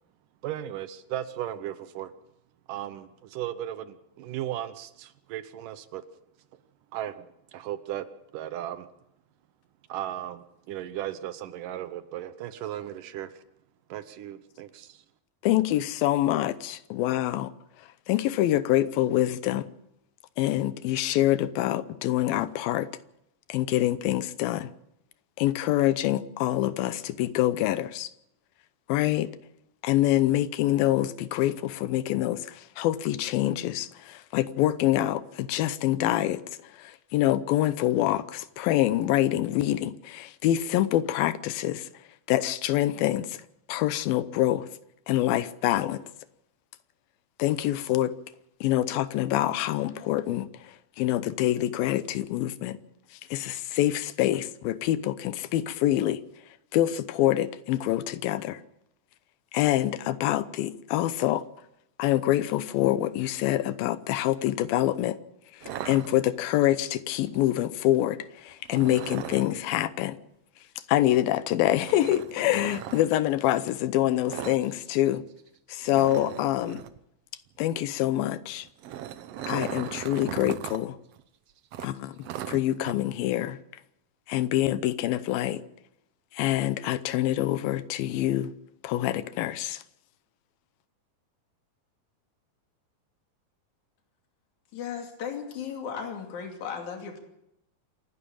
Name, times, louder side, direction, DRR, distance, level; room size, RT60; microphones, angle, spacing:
voice 1, 0.4-2.1 2.7-6.0 6.9-7.3 7.5-8.1 8.3-8.9 9.9-13.4 13.9-15.0, right 12 dB, 75° right, 2.4 m, -36 dB
voice 2, 15.4-17.5 18.1-19.7 20.4-22.9 23.5-24.7 25.4-28.1 28.9-29.3 29.8-36.4 36.7-41.9 42.3-43.4 43.7-44.7 45.1-46.0 47.4-48.1 48.6-52.8 53.3-56.2 56.7-58.6 59.5-61.4 62.0-65.2 65.5-70.2 70.9-75.2 75.7-76.8 77.6-78.7 79.5-81.0 81.8-82.2 82.5-83.6 84.3-85.6 86.3-88.5 88.8-89.8, left 13 dB, 85° left, 2.7 m, -26 dB
sound 1, 65.6-66.6 68.7-69.6 71.8-73.0 74.3-74.6 74.9-75.1 75.4-75.5 75.9-77.0 78.6-80.8 81.1-81.2 81.7-82.9, right 11 dB, 90° right, 1.4 m, -38 dB
voice 3, 94.7-97.2, left 7 dB, 55° left, 3.9 m, -36 dB
27.5 x 11.0 x 8.8 m
omnidirectional pair, 4.1 m